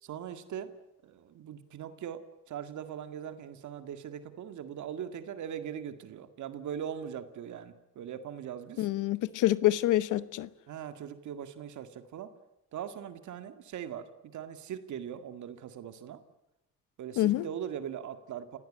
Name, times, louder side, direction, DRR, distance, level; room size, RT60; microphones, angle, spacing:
voice 1, 0.0-0.7 1.0-2.2 2.5-8.9 10.7-12.3 12.7-16.2 17.0-18.6, right 9 dB, 75° right, 2.1 m, -40 dB
voice 2, 8.8-10.5 17.2-17.5, left 14 dB, 85° left, 1.0 m, -26 dB
29.0 x 17.0 x 8.7 m
cardioid pair, 90°, 30 cm